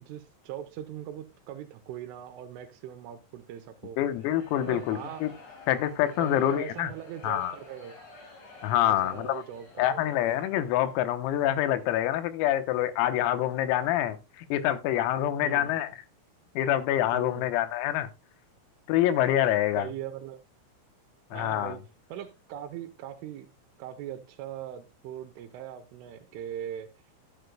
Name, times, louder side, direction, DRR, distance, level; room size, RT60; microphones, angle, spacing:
voice 1, 0.0-4.0 4.6-5.2 6.2-8.0 8.8-10.2 15.4-15.7 17.1-17.5 19.8-20.4 21.3-21.8 22.1-23.5 23.8-26.9, right 10 dB, 80° right, 3.1 m, -40 dB
voice 2, 4.0-5.3 5.7-6.9 7.2-7.6 8.6-9.4 9.8-15.9 16.6-18.1 18.9-19.9 21.3-21.8, left 12 dB, 85° left, 3.7 m, -26 dB
sound 1, 4.0-11.2, left 3 dB, 35° left, 3.3 m, -51 dB
12.5 x 10.0 x 2.2 m
omnidirectional pair, 6.0 m